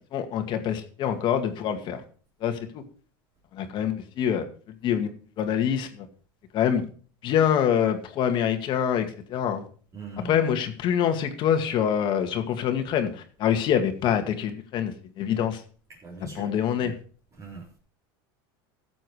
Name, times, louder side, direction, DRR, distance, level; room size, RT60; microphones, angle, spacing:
voice 1, 0.1-2.0 2.4-2.8 3.5-4.5 4.8-5.1 5.4-6.1 6.5-6.8 7.2-9.6 10.2-15.6 16.2-16.9, left 9 dB, 40° left, 6 dB, 2.1 m, -25 dB
voice 2, 9.9-10.4 15.9-17.0 17.4-17.6, right 4 dB, 25° right, -4 dB, 4.1 m, -42 dB
14.5 x 7.8 x 4.8 m, 0.42 s
supercardioid pair, 140°, 12 cm